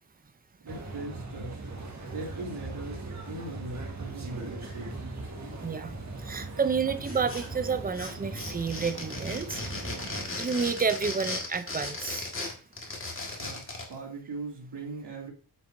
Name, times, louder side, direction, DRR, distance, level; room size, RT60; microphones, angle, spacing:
voice 1, 0.6-1.6 2.1-4.9 13.4-15.3, right 2 dB, 85° right, -1 dB, 2.7 m, -40 dB
sound 1, 0.7-10.2, right 2 dB, 40° right, 1.6 m, -39 dB
voice 2, 5.6-9.6 10.4-12.3, right 5 dB, 20° right, 10 dB, 0.6 m, -30 dB
sound 2, 7.0-7.7 7.9-13.9, left 2 dB, 30° left, 1.8 m, -36 dB
8.7 x 7.6 x 2.7 m, 0.37 s
wide cardioid pair, 170°, 41 cm